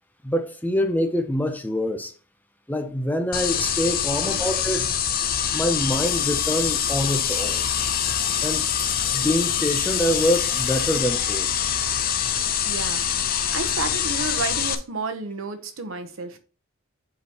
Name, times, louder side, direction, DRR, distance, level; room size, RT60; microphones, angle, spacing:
voice 1, 0.2-2.1 2.7-4.9 5.3-7.6 8.4-8.7 9.1-11.6, equal, 10° left, 0.7 m, -25 dB
sound 1, 3.3-14.8, left 9 dB, 45° left, 0.6 m, -25 dB
sound 2, 5.9-11.0, left 6 dB, 60° left, 2.6 m, -37 dB
voice 2, 12.6-13.1 13.5-16.4, right 4 dB, 70° right, 1.0 m, -31 dB
8.2 x 4.9 x 3.0 m
head